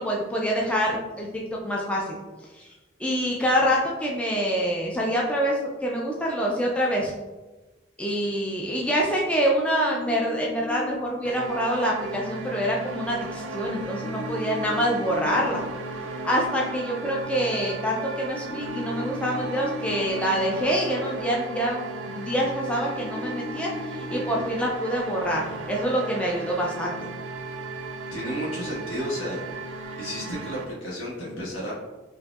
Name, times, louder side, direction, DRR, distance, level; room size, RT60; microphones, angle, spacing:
voice 1, 0.0-2.2 2.6-2.7 3.0-7.1 8.0-15.6 16.2-21.8 22.1-26.9, equal, 5° left, -3 dB, 0.4 m, -26 dB
sound 1, 9.6-10.9 14.0-15.4 18.5-19.9 23.0-24.4, left 2 dB, 30° left, 0.7 m, -36 dB
sound 2, 11.2-30.6, right 2 dB, 80° right, 0.4 m, -36 dB
voice 2, 28.1-29.4 30.0-31.7, equal, 85° left, -6 dB, 1.4 m, -32 dB
4.7 x 2.6 x 2.4 m, 1.2 s
head